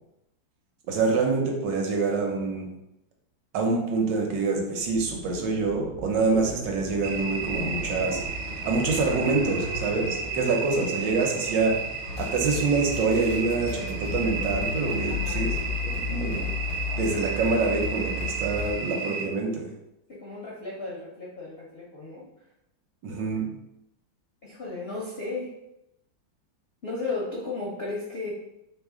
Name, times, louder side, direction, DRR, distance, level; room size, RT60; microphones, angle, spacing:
voice 1, 0.9-2.7 3.5-8.2 8.6-11.8 12.2-15.5 15.8-16.5 16.9-19.7 23.0-23.5, right 3 dB, 70° right, 1 dB, 1.3 m, -26 dB
sound 1, 4.8-13.6, right 1 dB, 55° right, 0.7 m, -39 dB
sound 2, 7.0-19.3, right 5 dB, 90° right, 1.4 m, -33 dB
voice 2, 8.3-8.7 10.7-11.0 15.1-15.5 20.1-22.2 24.4-25.5 26.8-28.3, left 3 dB, 70° left, -4 dB, 0.5 m, -35 dB
sound 3, 12.1-18.7, left 5 dB, 85° left, 1.3 m, -33 dB
3.2 x 3.2 x 3.6 m, 0.87 s
omnidirectional pair, 2.0 m